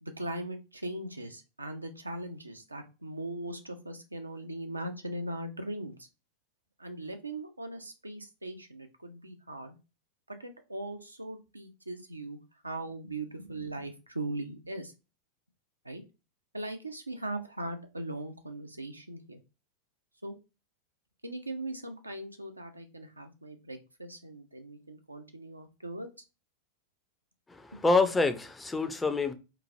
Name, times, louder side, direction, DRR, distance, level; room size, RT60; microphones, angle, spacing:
voice 1, 0.0-6.1 6.8-9.8 10.3-14.9 15.8-16.0 16.5-19.4 20.2-20.4 21.2-26.2, right 1 dB, 85° right, 0.5 m, -39 dB
voice 2, 27.5-29.3, left 3 dB, 10° left, 0.4 m, -27 dB
2.9 x 2.5 x 2.5 m
figure-of-eight pair, 90°, 0 cm